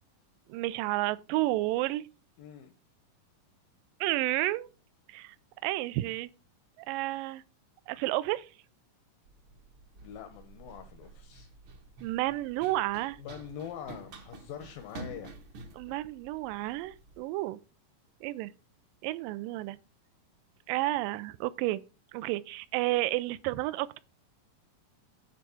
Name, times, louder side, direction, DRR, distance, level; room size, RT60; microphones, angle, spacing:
voice 1, 0.5-2.1 4.0-4.7 5.1-5.4 5.6-6.3 6.8-7.4 7.9-8.5 12.0-13.2 15.7-17.6 18.2-18.5 19.0-19.8 20.7-21.8 22.1-24.0, right 17 dB, 80° right, 2.2 m, -31 dB
voice 2, 2.4-2.7 10.0-11.5 13.2-15.4, left 9 dB, 85° left, 2.6 m, -44 dB
Run, 9.3-17.2, right 3 dB, 60° right, 1.3 m, -49 dB
9.4 x 3.6 x 6.9 m
omnidirectional pair, 3.9 m